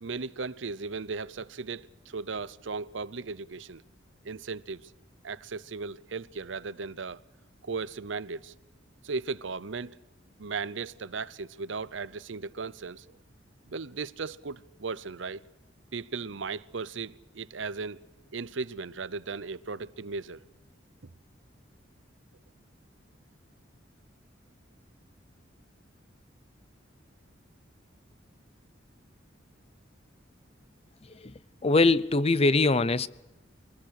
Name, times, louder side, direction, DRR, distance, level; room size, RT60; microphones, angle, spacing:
voice 1, 0.0-3.8 4.2-4.9 5.2-7.2 7.6-8.6 9.0-10.0 10.4-13.2 13.7-15.4 15.9-20.4, right 4 dB, 75° right, 0.8 m, -36 dB
voice 2, 31.0-33.1, left 3 dB, 30° left, 0.7 m, -23 dB
24.0 x 19.5 x 6.5 m
head